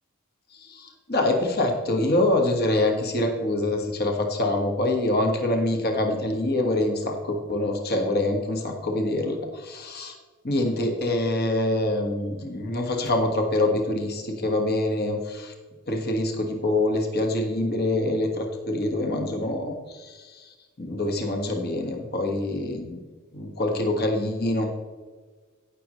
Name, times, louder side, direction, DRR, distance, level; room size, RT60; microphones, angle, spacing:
voice 1, 0.5-10.1 10.4-15.5 15.9-23.0 23.3-24.7, left 1 dB, 45° left, 3 dB, 1.5 m, -25 dB
17.5 x 6.5 x 3.1 m, 1.4 s
head